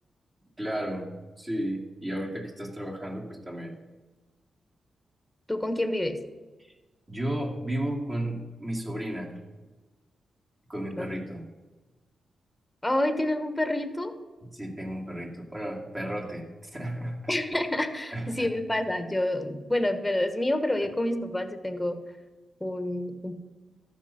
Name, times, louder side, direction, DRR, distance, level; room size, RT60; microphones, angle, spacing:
voice 1, 0.6-1.1 1.4-3.8 7.1-9.3 10.7-11.4 14.5-17.2 18.1-18.5, right 1 dB, 25° right, 0 dB, 2.5 m, -33 dB
voice 2, 5.5-6.2 11.0-11.1 12.8-14.1 17.3-22.0 22.6-23.4, left 1 dB, 10° left, 9 dB, 1.3 m, -28 dB
13.5 x 5.7 x 5.8 m, 1.2 s
cardioid pair, 60°, 0 cm